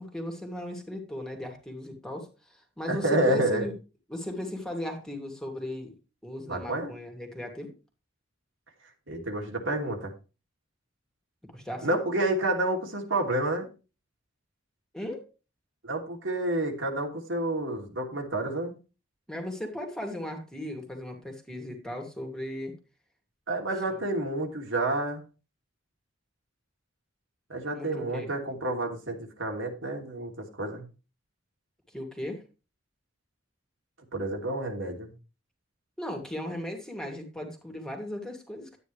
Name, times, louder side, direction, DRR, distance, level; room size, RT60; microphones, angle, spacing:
voice 1, 0.0-3.7 4.1-5.9 6.2-7.7 11.5-12.0 14.9-15.3 19.3-22.7 23.9-24.0 27.7-28.3 31.9-32.4 36.0-38.8, left 1 dB, 5° left, 2 dB, 2.6 m, -37 dB
voice 2, 2.9-3.7 6.5-6.9 9.1-10.1 11.8-13.7 15.8-18.7 23.5-25.2 27.5-30.8 34.1-35.1, right 1 dB, 75° right, 1 dB, 3.0 m, -29 dB
12.5 x 9.5 x 3.3 m, 0.32 s
head